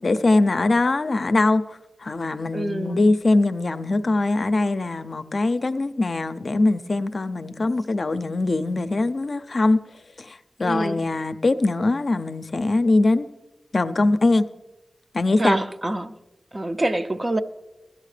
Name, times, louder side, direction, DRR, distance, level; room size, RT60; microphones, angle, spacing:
voice 1, 0.0-9.8 10.2-13.3 13.7-14.5 15.1-15.6, left 2 dB, 60° left, 0.5 m, -22 dB
voice 2, 2.5-3.0 10.6-11.0 15.4-16.2 16.5-17.4, right 1 dB, 35° right, 0.6 m, -26 dB
16.0 x 12.5 x 3.3 m
cardioid pair, 50°, 0 cm